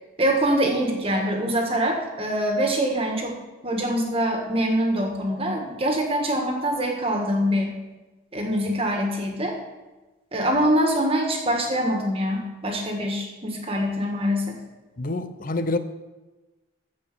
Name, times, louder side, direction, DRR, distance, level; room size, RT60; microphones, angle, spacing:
voice 1, 0.2-3.4 3.6-7.7 8.3-9.6 10.3-14.5, equal, 30° right, 2 dB, 1.7 m, -24 dB
voice 2, 15.0-15.8, left 2 dB, 45° left, 11 dB, 0.7 m, -27 dB
14.5 x 5.1 x 6.9 m, 1.1 s
head